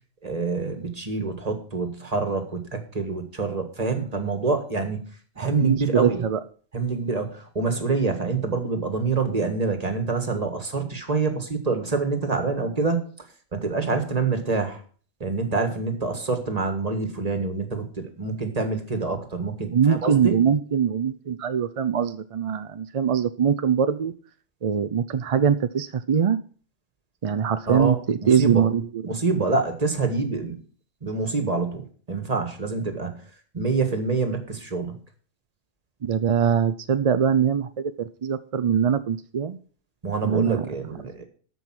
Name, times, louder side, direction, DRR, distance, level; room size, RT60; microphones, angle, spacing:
voice 1, 0.2-5.0 5.3-6.2 6.7-13.0 13.5-14.8 15.2-20.3 27.7-28.6 29.0-30.6 31.0-33.2 33.5-34.9 40.0-41.3, right 4 dB, 35° right, 6 dB, 1.8 m, -26 dB
voice 2, 5.6-6.4 19.7-24.1 24.6-26.4 27.2-28.9 36.0-39.6 40.2-40.6, right 7 dB, 50° right, 12 dB, 0.4 m, -22 dB
13.5 x 5.4 x 6.1 m, 0.43 s
omnidirectional pair, 1.2 m